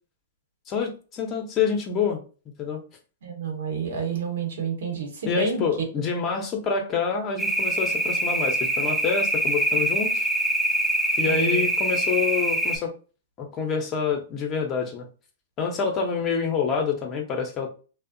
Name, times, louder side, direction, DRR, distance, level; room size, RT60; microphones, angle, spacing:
voice 1, 0.7-2.2 2.6-2.8 5.3-10.3 11.2-12.9 13.4-15.1 15.6-17.7, left 6 dB, 30° left, 3 dB, 0.6 m, -27 dB
voice 2, 3.2-5.6 6.0-6.1 11.2-11.7, right 5 dB, 70° right, 3 dB, 1.0 m, -29 dB
sound 1, 7.4-12.8, right 1 dB, 5° right, 0.3 m, -24 dB
2.5 x 2.0 x 2.6 m, 0.36 s
hypercardioid pair, 120°, 0 cm